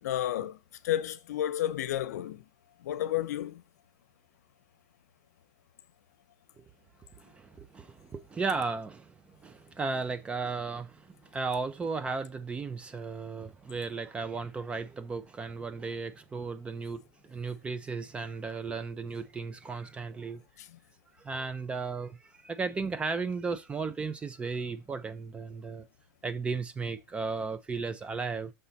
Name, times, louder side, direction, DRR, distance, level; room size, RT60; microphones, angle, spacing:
voice 1, 0.0-0.6 0.8-2.4 2.8-3.6 20.6-20.8, left 12 dB, 80° left, 0.8 m, -31 dB
voice 2, 7.2-20.4 21.2-25.9 26.2-28.5, right 4 dB, 15° right, 0.5 m, -35 dB
6.6 x 3.9 x 5.6 m
supercardioid pair, 145°, 9 cm